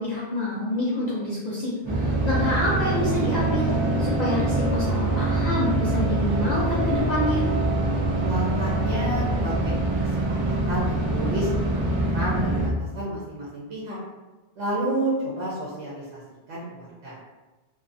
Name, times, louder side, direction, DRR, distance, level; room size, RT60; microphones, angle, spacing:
voice 1, 0.0-3.7 4.0-7.4, left 1 dB, 50° left, -7 dB, 0.6 m, -27 dB
sound 1, 1.8-12.7, right 2 dB, 35° right, 0.5 m, -24 dB
voice 2, 8.2-9.7 10.3-14.0 14.6-16.2 16.5-17.2, right 1 dB, 80° right, -7 dB, 1.0 m, -31 dB
2.6 x 2.3 x 2.5 m, 1.2 s
omnidirectional pair, 1.1 m